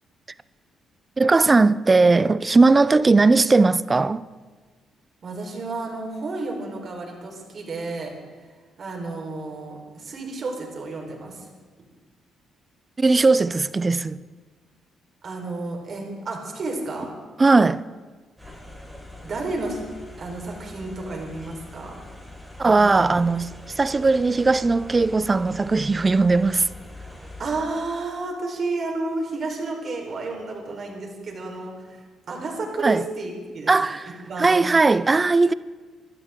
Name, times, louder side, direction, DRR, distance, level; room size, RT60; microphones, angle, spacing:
voice 1, 1.2-4.3 13.0-14.2 17.4-17.8 22.6-26.7 32.8-33.0 33.7-35.5, right 3 dB, 25° right, 0.5 m, -18 dB
voice 2, 5.2-8.1 8.8-11.5 15.2-17.1 18.4-18.6 19.2-19.8 20.2-21.9 22.6-23.1 27.2-33.7 34.2-34.5, right 3 dB, 50° right, 4.2 m, -31 dB
sound 1, 18.4-27.5, left 2 dB, ahead, 5.0 m, -42 dB
27.5 x 12.0 x 3.7 m
cardioid pair, 90°, 0 cm